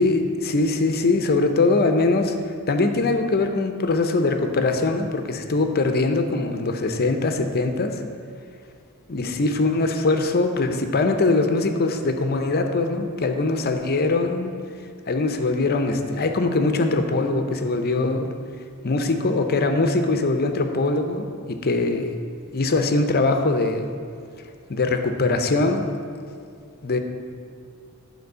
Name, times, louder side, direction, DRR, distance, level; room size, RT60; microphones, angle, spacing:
voice 1, 0.0-2.3 2.7-8.0 9.1-14.5 15.1-18.3 18.8-22.2 22.5-23.9 24.7-25.9 26.8-27.0, left 3 dB, 45° left, 6 dB, 0.7 m, -22 dB
9.5 x 4.5 x 6.7 m, 2.3 s
head